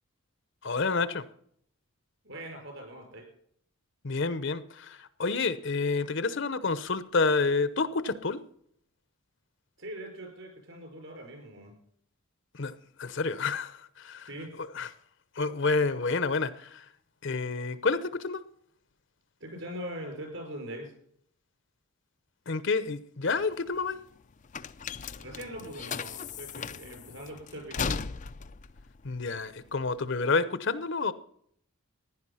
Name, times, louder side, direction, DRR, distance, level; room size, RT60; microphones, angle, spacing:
voice 1, 0.6-1.2 4.0-8.4 12.5-14.3 14.6-14.9 15.4-16.8 17.2-18.4 22.5-24.0 29.0-31.1, left 4 dB, 55° left, 14 dB, 0.8 m, -29 dB
voice 2, 2.2-3.3 9.8-11.8 14.3-14.5 19.4-20.9 24.9-28.0, right 1 dB, 60° right, 3 dB, 5.9 m, -42 dB
sound 1, 23.3-30.1, left 5 dB, 35° left, 0.4 m, -37 dB
15.5 x 10.5 x 5.7 m, 0.65 s
head